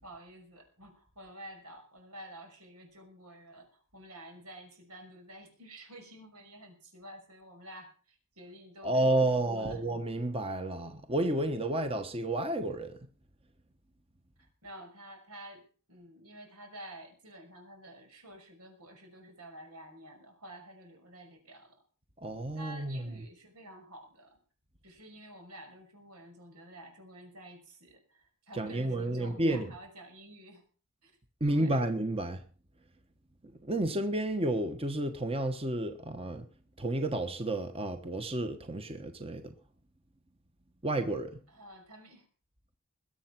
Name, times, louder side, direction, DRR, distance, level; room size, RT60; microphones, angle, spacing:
voice 1, 0.0-9.8 14.6-21.8 22.6-24.4 24.8-30.6 31.0-31.1 31.4-31.9 41.5-42.3, right 1 dB, 90° right, 6.0 m, -50 dB
voice 2, 8.8-13.0 22.2-23.1 28.5-29.7 31.4-32.4 33.6-36.5 36.8-39.5 40.8-41.4, right 1 dB, 25° right, 1.2 m, -31 dB
21.5 x 8.0 x 6.0 m
head